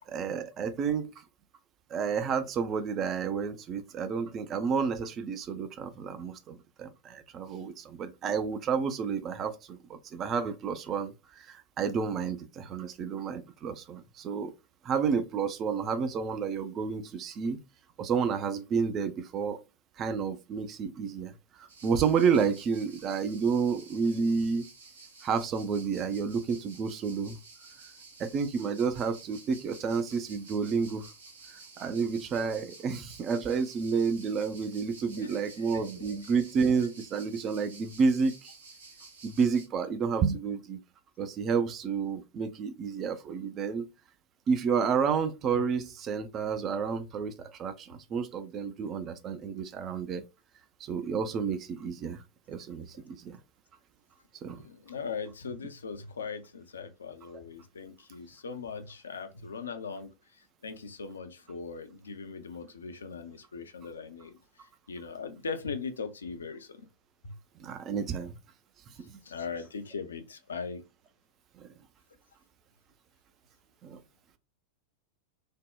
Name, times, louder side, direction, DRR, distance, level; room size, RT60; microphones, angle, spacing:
voice 1, 0.1-1.2 1.9-14.5 14.8-17.6 18.0-19.6 20.0-24.7 25.2-27.4 28.2-31.1 31.5-38.5 39.2-40.8 41.2-43.9 44.5-50.2 50.8-52.2 52.5-53.4 54.4-54.6 67.6-68.4 69.0-69.2 71.6-71.7 73.8-74.0, right 6 dB, 30° right, 0.4 m, -30 dB
sound 1, 21.7-39.7, right 4 dB, 65° right, 0.7 m, -52 dB
voice 2, 35.7-36.1 36.8-36.9 54.6-60.1 60.6-64.3 64.9-66.9 67.2-67.3 69.2-70.8, left 5 dB, 70° left, 0.4 m, -39 dB
3.4 x 2.0 x 2.3 m
figure-of-eight pair, 90°, 0 cm